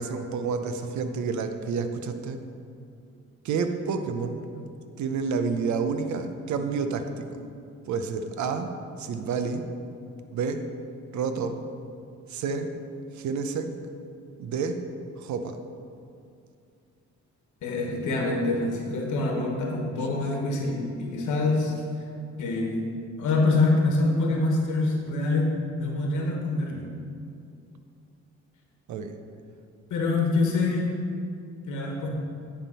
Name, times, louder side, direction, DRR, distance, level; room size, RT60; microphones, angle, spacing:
voice 1, 0.0-2.4 3.4-4.7 5.0-7.4 7.9-8.7 9.0-9.6 10.3-10.6 11.1-11.6 12.3-12.7 13.1-13.7 14.4-14.8 15.2-15.6 28.9-29.1, right 5 dB, 70° right, 8 dB, 0.7 m, -29 dB
voice 2, 17.6-21.7 22.4-22.8 23.2-26.9 29.9-30.9 31.7-32.1, left 2 dB, 80° left, 0 dB, 1.2 m, -25 dB
9.8 x 3.7 x 5.5 m, 2.5 s
cardioid pair, 90°, 30 cm